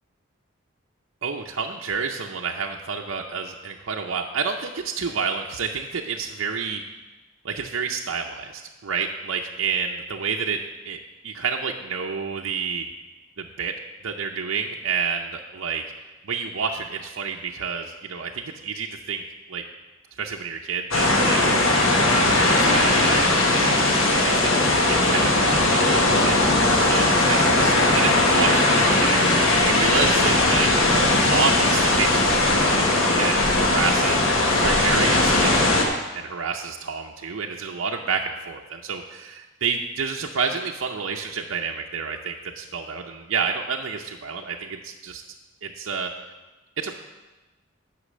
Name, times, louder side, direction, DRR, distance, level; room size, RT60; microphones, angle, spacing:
voice 1, 1.2-6.8 7.4-10.6 10.8-11.0 11.2-12.8 13.4-13.7 14.0-15.8 16.2-19.2 19.5-19.6 20.2-21.4 22.1-23.9 24.1-30.7 31.2-32.7 33.2-45.2 45.6-46.1 46.8-47.0, right 5 dB, 75° right, 1 dB, 0.6 m, -29 dB
Beach Surf Noise, 20.9-35.8, left 2 dB, 75° left, 1.4 m, -19 dB
9.9 x 5.8 x 6.3 m, 1.2 s
head